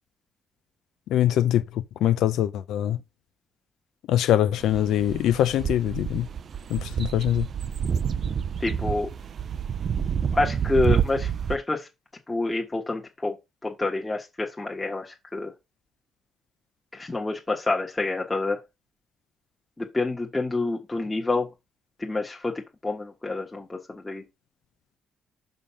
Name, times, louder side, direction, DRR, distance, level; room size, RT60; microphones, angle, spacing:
voice 1, 1.1-1.6 2.0-3.0 4.1-6.3 6.7-7.5, left 11 dB, 85° left, 0.7 m, -23 dB
sound 1, 4.6-11.6, right 7 dB, 55° right, 0.5 m, -28 dB
voice 2, 8.6-9.1 10.3-11.9 12.3-13.3 13.6-15.5 16.9-18.6 19.8-21.5 22.0-24.2, left 3 dB, 15° left, 1.4 m, -28 dB
5.5 x 5.3 x 5.7 m
cardioid pair, 90°, 0 cm